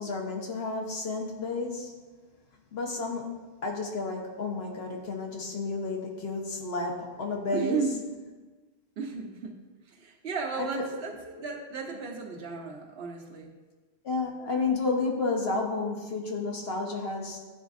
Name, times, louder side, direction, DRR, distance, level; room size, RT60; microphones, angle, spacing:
voice 1, 0.0-1.9 2.7-7.8 10.6-10.8 14.0-17.4, left 3 dB, 70° left, 0 dB, 1.2 m, -31 dB
voice 2, 7.5-8.0 9.0-9.6 9.9-13.5, right 5 dB, 75° right, 1 dB, 1.1 m, -34 dB
10.5 x 4.0 x 2.6 m, 1.3 s
omnidirectional pair, 1.1 m